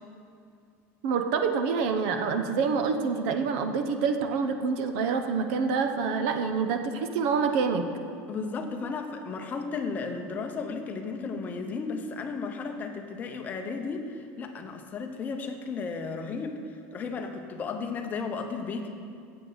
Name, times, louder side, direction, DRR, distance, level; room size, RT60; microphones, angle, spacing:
voice 1, 1.0-7.9, right 5 dB, 65° right, 7 dB, 0.8 m, -27 dB
voice 2, 8.3-16.6 16.9-18.9, left 4 dB, 25° left, 5 dB, 0.8 m, -34 dB
15.5 x 7.9 x 4.0 m, 2.4 s
cardioid pair, 165°, 7 cm